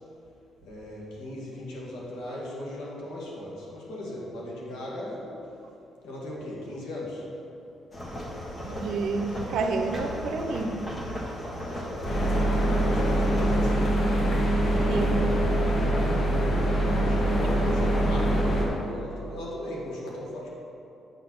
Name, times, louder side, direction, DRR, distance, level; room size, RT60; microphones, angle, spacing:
voice 1, 0.6-5.4 6.0-7.2 11.4-13.9 16.8-20.5, left 1 dB, 90° left, -4 dB, 1.7 m, -38 dB
sound 1, 7.9-13.6, equal, 30° left, 1.5 m, -36 dB
voice 2, 8.6-10.9 14.9-15.6 17.3-17.7, right 3 dB, 75° right, 6 dB, 0.6 m, -30 dB
sound 2, 12.0-18.7, right 1 dB, 45° left, 1.5 m, -24 dB
7.9 x 4.0 x 6.2 m, 2.8 s
cardioid pair, 90°, 0 cm